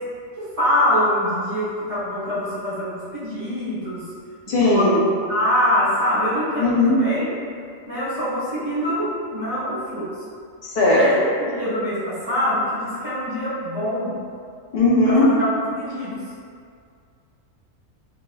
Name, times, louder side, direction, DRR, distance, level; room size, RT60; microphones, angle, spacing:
voice 1, 0.4-4.0 4.5-7.3 7.8-10.1 10.9-14.1 15.0-15.5 15.8-16.2, equal, 30° right, -11 dB, 1.1 m, -24 dB
voice 2, 4.5-5.0 6.6-7.0 10.6-11.0 14.7-15.3, left 2 dB, 60° left, -5 dB, 0.5 m, -17 dB
2.9 x 2.7 x 2.2 m, 2.2 s
omnidirectional pair, 1.3 m